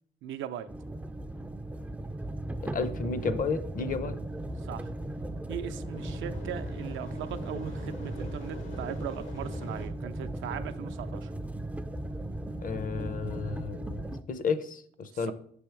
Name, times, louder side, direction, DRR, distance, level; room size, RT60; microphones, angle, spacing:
voice 1, 0.2-0.7 4.6-4.9 5.5-11.3, right 9 dB, 75° right, 10 dB, 0.4 m, -39 dB
sound 1, 0.7-14.2, right 1 dB, 10° right, 0.3 m, -37 dB
voice 2, 2.6-4.2 12.6-15.3, left 5 dB, 45° left, 12 dB, 0.5 m, -32 dB
sound 2, 4.2-9.9, left 2 dB, 85° left, 1.1 m, -48 dB
6.1 x 3.5 x 4.5 m, 0.62 s
cardioid pair, 90°, 20 cm